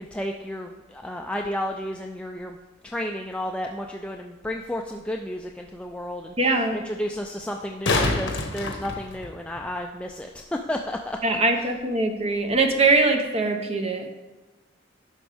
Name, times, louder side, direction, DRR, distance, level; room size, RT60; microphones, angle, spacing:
voice 1, 0.0-2.6 2.8-6.3 6.7-10.4 10.7-11.2, left 1 dB, 5° left, 1 dB, 0.4 m, -32 dB
sound 1, 4.6-4.7 7.5-9.6 12.5-12.6, left 2 dB, 75° left, 1.3 m, -26 dB
voice 2, 6.4-6.8 11.2-14.0, right 3 dB, 30° right, 4 dB, 0.9 m, -22 dB
10.5 x 6.2 x 3.5 m, 1.2 s
head